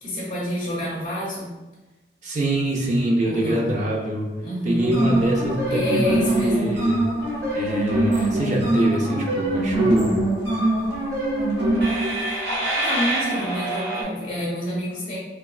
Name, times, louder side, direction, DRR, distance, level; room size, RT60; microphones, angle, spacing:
voice 1, 0.0-1.5 3.3-3.7 4.4-4.9 5.7-6.7 12.8-15.2, left 1 dB, 35° left, -8 dB, 0.6 m, -28 dB
voice 2, 2.2-4.3 4.6-7.1 7.5-10.5, right 1 dB, 40° right, -1 dB, 0.4 m, -24 dB
sound 1, 4.8-14.0, right 1 dB, 80° right, 0.9 m, -23 dB
3.0 x 2.2 x 2.3 m, 1.1 s
head